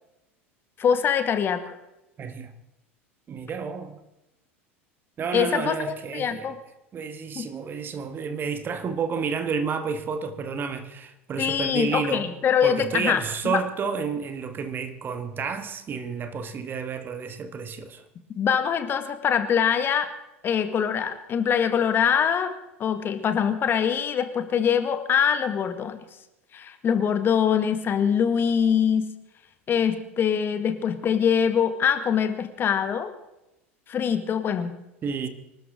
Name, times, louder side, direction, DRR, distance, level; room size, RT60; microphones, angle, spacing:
voice 1, 0.8-1.7 5.3-5.7 6.1-6.5 7.3-7.4 11.4-13.6 18.3-20.1 20.4-22.5 22.8-26.0 26.5-29.1 29.7-33.1 33.9-34.7, left 7 dB, 30° left, 1.8 m, -23 dB
voice 2, 2.2-2.5 3.3-4.0 5.2-6.6 6.9-12.3 12.6-18.0 35.0-35.3, right 5 dB, 30° right, 1.8 m, -30 dB
25.0 x 13.0 x 3.8 m
figure-of-eight pair, 75°, 7 cm